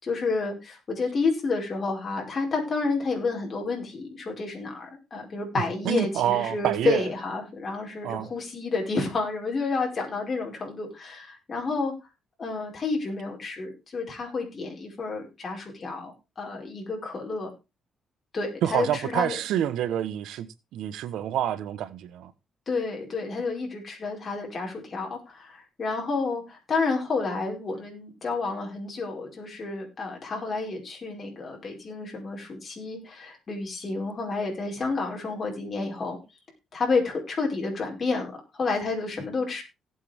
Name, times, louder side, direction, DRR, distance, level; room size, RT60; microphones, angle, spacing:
voice 1, 0.0-11.9 12.4-17.5 18.3-19.4 22.7-36.2 36.7-39.6, left 3 dB, 40° left, 5.1 m, -30 dB
voice 2, 5.8-7.0 8.0-8.3 18.6-20.5 20.7-22.3, right 11 dB, 85° right, 1.1 m, -27 dB
18.5 x 7.7 x 3.5 m
cardioid pair, 90°, 0 cm